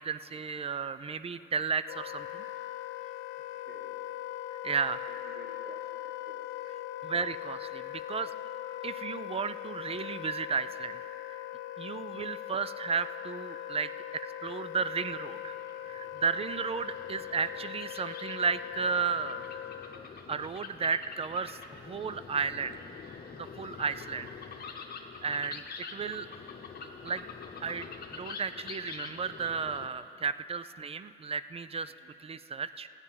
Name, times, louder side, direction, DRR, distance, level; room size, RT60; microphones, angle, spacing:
voice 1, 0.0-2.4 4.6-5.1 7.0-8.3 8.8-11.0 11.3-11.4 11.8-15.6 15.8-19.5 20.3-21.6 21.8-22.8 23.4-24.3 25.2-26.3 27.0-27.2 27.6-31.9 32.2-32.9, right 5 dB, 30° right, 14 dB, 0.4 m, -33 dB
Wind instrument woodwind instrument, 1.9-20.1, left 14 dB, 75° left, 0.4 m, -41 dB
voice 2, 3.6-4.0 5.1-6.5 32.0-32.1, right 4 dB, 65° right, 5 dB, 1.1 m, -53 dB
sound 1, 15.3-29.9, left 6 dB, 50° left, 1.1 m, -46 dB
14.5 x 9.6 x 5.7 m, 2.9 s
cardioid pair, 90°, 20 cm